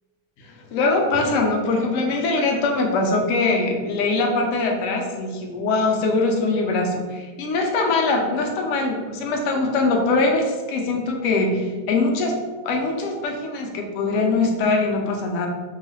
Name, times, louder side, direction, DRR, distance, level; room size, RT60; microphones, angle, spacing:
voice 1, 0.4-15.5, left 3 dB, 70° left, 2 dB, 0.7 m, -22 dB
2.9 x 2.3 x 3.1 m, 1.4 s
omnidirectional pair, 1.8 m